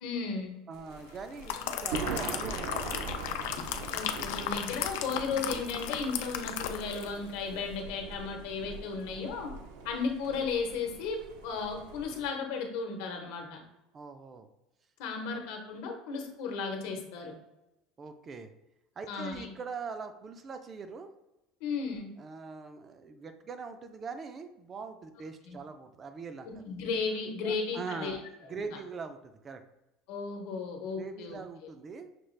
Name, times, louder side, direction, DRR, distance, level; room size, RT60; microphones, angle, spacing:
voice 1, 0.0-0.5 3.9-9.5 9.8-13.6 15.0-17.3 19.1-19.5 21.6-22.1 25.4-25.6 26.4-28.2 28.5-28.6 30.1-31.4, left 4 dB, 70° left, 3 dB, 0.9 m, -35 dB
voice 2, 0.7-3.0 13.9-14.5 18.0-18.5 19.0-21.1 22.2-26.5 27.4-29.6 31.0-32.1, right 5 dB, 20° right, 8 dB, 0.3 m, -42 dB
Thunder, 0.7-12.3, right 4 dB, 70° right, 0.5 m, -42 dB
sound 1, 1.1-7.2 7.5-7.7, left 9 dB, 90° left, 0.4 m, -36 dB
5.9 x 2.4 x 3.2 m, 0.96 s
cardioid pair, 170°, 0 cm